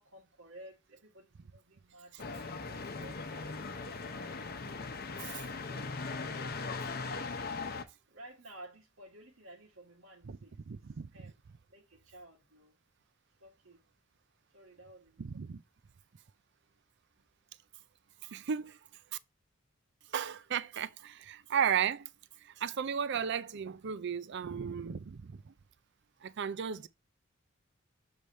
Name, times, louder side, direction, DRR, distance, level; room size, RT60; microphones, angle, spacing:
voice 1, 0.0-3.7 4.2-4.5 5.5-6.1 8.1-11.4 11.7-12.8 13.4-13.8 14.5-15.3, right 1 dB, 85° right, 1.5 m, -55 dB
sound 1, 2.2-7.8, left 4 dB, 50° left, 0.8 m, -39 dB
voice 2, 10.7-11.1 15.2-15.6 18.2-18.8 20.1-22.1 22.4-25.5 26.2-26.9, right 7 dB, 60° right, 0.5 m, -35 dB
7.0 x 3.3 x 4.2 m
head